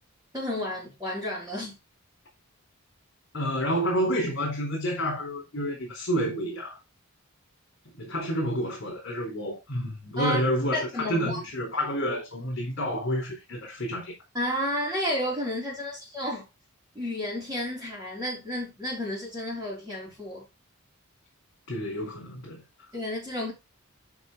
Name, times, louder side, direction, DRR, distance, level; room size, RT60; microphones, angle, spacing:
voice 1, 0.3-1.8 10.2-10.4 10.7-11.4 14.3-16.5 16.9-20.4 22.9-23.5, left 1 dB, 15° right, 4.0 m, -31 dB
voice 2, 3.3-6.8 8.0-14.1 21.7-22.6, equal, 55° left, 4.3 m, -29 dB
9.4 x 5.1 x 4.0 m
head